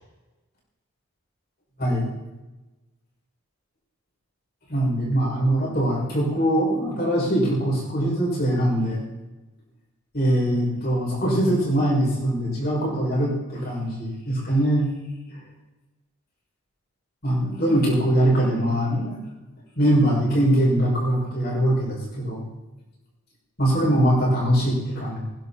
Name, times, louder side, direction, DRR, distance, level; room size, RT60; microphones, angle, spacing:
voice 1, 4.7-9.0 10.1-14.9 17.2-19.1 19.8-22.4 23.6-25.2, right 1 dB, 45° left, -4 dB, 6.3 m, -22 dB
20.5 x 11.0 x 4.3 m, 1.1 s
head